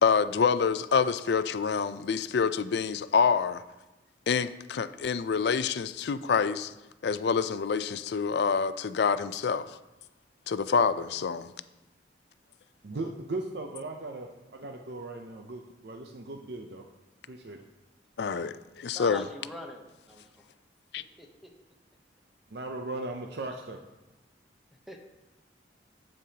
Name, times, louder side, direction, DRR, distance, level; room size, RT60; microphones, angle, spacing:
voice 1, 0.0-3.6 4.3-6.7 7.0-9.8 10.5-11.5 18.2-19.2 20.9-21.0, left 6 dB, 65° left, 13 dB, 0.4 m, -27 dB
voice 2, 12.8-16.8 17.3-17.6 22.5-23.8, right 2 dB, 60° right, 3 dB, 0.6 m, -38 dB
voice 3, 18.8-20.5 21.2-21.5 24.9-25.0, left 1 dB, ahead, 2 dB, 0.9 m, -44 dB
15.5 x 5.3 x 2.8 m, 1.1 s
head